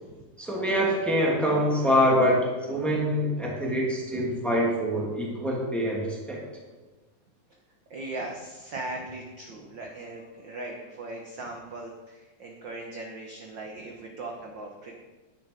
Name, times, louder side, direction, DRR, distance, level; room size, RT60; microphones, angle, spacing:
voice 1, 0.4-6.4, equal, ahead, -3 dB, 2.1 m, -25 dB
voice 2, 7.9-14.9, right 2 dB, 55° right, 1 dB, 1.3 m, -39 dB
11.0 x 10.0 x 5.1 m, 1.2 s
omnidirectional pair, 3.6 m